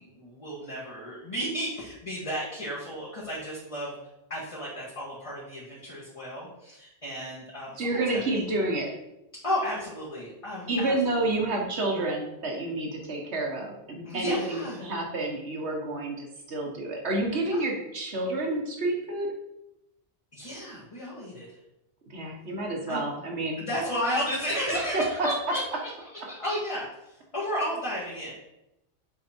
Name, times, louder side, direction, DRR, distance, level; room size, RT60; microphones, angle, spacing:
voice 1, 0.0-3.9 4.3-8.4 9.4-11.6 14.0-14.9 17.5-17.6 20.3-21.5 22.9-23.0 23.6-28.3, equal, 30° left, -7 dB, 1.7 m, -33 dB
voice 2, 7.8-8.9 10.7-19.3 22.1-23.6 24.7-25.3, right 2 dB, 80° right, 0 dB, 1.7 m, -29 dB
6.8 x 4.7 x 4.5 m, 0.88 s
omnidirectional pair, 1.1 m